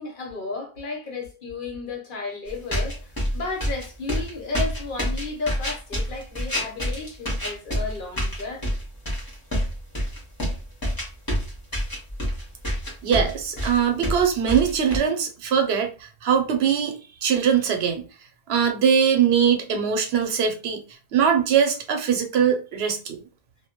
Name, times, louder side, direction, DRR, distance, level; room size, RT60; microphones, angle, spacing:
voice 1, 0.0-8.7, left 3 dB, 55° left, 0.9 m, -33 dB
sound 1, 2.5-15.0, equal, 25° left, 0.8 m, -27 dB
voice 2, 13.0-18.0 18.5-20.8 21.1-23.2, right 7 dB, 85° right, 0.9 m, -22 dB
2.2 x 2.1 x 2.8 m
omnidirectional pair, 1.0 m